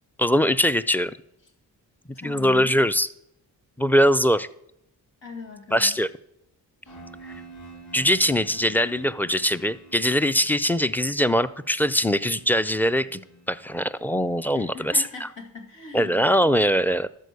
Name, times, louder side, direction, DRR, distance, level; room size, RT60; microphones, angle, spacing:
voice 1, 0.2-1.1 2.2-3.1 3.8-4.5 5.7-6.1 7.9-13.2 13.5-15.3 15.9-17.1, equal, 5° left, 14 dB, 0.4 m, -22 dB
voice 2, 2.1-2.8 5.2-6.0 6.8-7.0 14.5-16.3, left 4 dB, 90° left, 1 dB, 2.4 m, -40 dB
sound 1, 6.9-14.7, right 3 dB, 40° left, 2.1 m, -48 dB
13.0 x 4.5 x 6.8 m, 0.76 s
cardioid pair, 60°, 43 cm